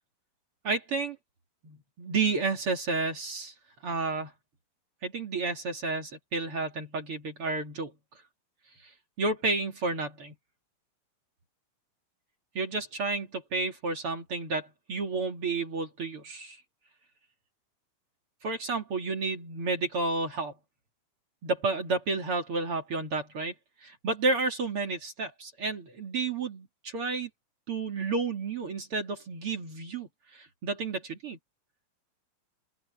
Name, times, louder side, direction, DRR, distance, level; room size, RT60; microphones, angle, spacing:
voice 1, 0.6-1.2 1.6-3.5 3.8-4.3 5.0-7.9 8.8-8.9 9.2-10.3 12.5-16.6 18.4-20.6 21.4-27.3 27.7-31.4, right 3 dB, 45° right, 2.9 m, -31 dB
open air
omnidirectional pair, 4.0 m